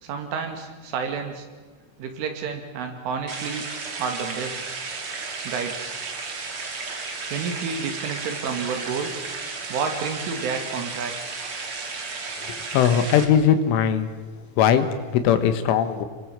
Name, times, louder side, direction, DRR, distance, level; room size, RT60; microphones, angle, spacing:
voice 1, 0.0-1.5 2.0-3.7 4.0-4.7 5.4-6.0 7.3-9.3 9.7-11.1, right 5 dB, 80° right, 5 dB, 5.0 m, -30 dB
sound 1, 3.3-13.2, right 4 dB, 40° right, 2.3 m, -33 dB
voice 2, 12.5-14.1 14.6-16.1, left 8 dB, 80° left, 9 dB, 4.0 m, -20 dB
28.0 x 22.0 x 7.5 m, 1.3 s
omnidirectional pair, 5.6 m